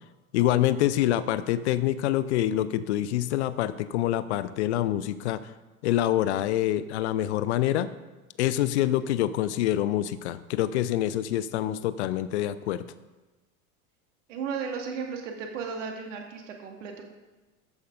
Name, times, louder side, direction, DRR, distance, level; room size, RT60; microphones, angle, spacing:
voice 1, 0.3-5.5 5.8-7.9 8.4-12.8, left 13 dB, 50° left, 15 dB, 0.6 m, -26 dB
voice 2, 14.3-17.1, right 6 dB, 60° right, 2 dB, 2.2 m, -35 dB
13.0 x 9.4 x 3.9 m, 1.2 s
figure-of-eight pair, 75°, 42 cm